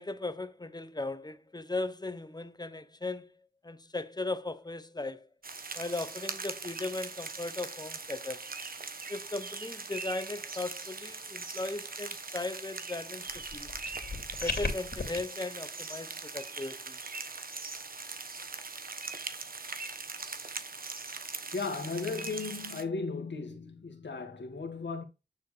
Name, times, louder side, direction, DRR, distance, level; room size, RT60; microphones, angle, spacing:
voice 1, 0.0-3.3 3.6-5.3 5.7-8.5 9.1-13.7 14.4-17.0, left 2 dB, 20° left, 1.1 m, -37 dB
sound 1, 5.4-22.8, right 4 dB, 50° right, 1.2 m, -41 dB
sound 2, 13.3-15.2, left 3 dB, 60° left, 2.9 m, -36 dB
voice 2, 21.5-25.0, left 4 dB, 75° left, 1.9 m, -36 dB
9.3 x 4.5 x 3.4 m
cardioid pair, 55°, 19 cm